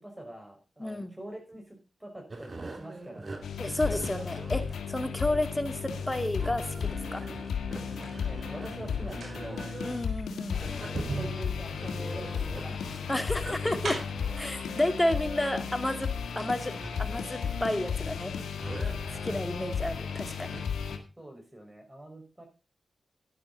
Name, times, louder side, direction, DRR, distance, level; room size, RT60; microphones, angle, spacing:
voice 1, 0.0-3.5 8.2-9.7 10.5-13.2 21.2-22.4, right 1 dB, 15° right, 2 dB, 5.5 m, -44 dB
voice 2, 0.8-1.1 3.6-7.2 9.8-10.6 13.1-14.0 14.4-16.1 16.4-16.7 17.0-18.3 19.1-20.6, left 1 dB, 15° left, 8 dB, 2.5 m, -31 dB
sound 1, 2.3-21.0, right 3 dB, 50° right, 3.0 m, -45 dB
sound 2, 3.4-21.0, left 6 dB, 85° left, 1.7 m, -34 dB
sound 3, 7.4-8.2 9.0-14.3 15.3-15.4 15.8-16.6 16.9-17.0, right 3 dB, 70° right, 5.7 m, -40 dB
12.0 x 10.5 x 4.1 m, 0.31 s
cardioid pair, 45°, 0 cm